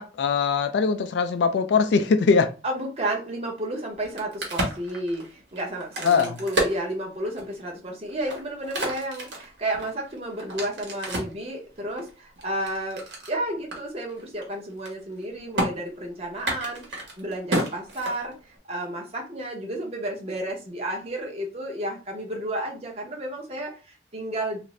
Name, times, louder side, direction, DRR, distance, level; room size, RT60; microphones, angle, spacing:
voice 1, 0.0-2.5 6.0-6.4, left 5 dB, 80° left, 9 dB, 0.3 m, -21 dB
voice 2, 2.6-24.6, right 1 dB, 35° right, 0 dB, 0.7 m, -32 dB
Crack, 3.9-7.6 8.1-11.4 12.0-13.3 13.7-13.8 14.1-14.4 14.7-15.2 15.5-15.7 16.3-18.6, right 1 dB, 85° right, 1.2 m, -30 dB
2.5 x 2.5 x 3.1 m, 0.33 s
head